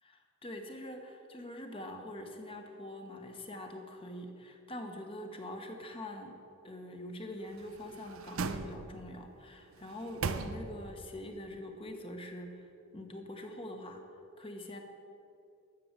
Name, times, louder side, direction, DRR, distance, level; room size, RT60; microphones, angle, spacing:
voice 1, 0.0-6.3 6.6-14.0 14.4-14.8, left 1 dB, 25° left, 4 dB, 1.1 m, -44 dB
sound 1, 7.5-9.2 9.7-11.0 11.4-11.5, right 4 dB, 70° right, 0.6 m, -39 dB
12.5 x 6.9 x 7.3 m, 2.7 s
head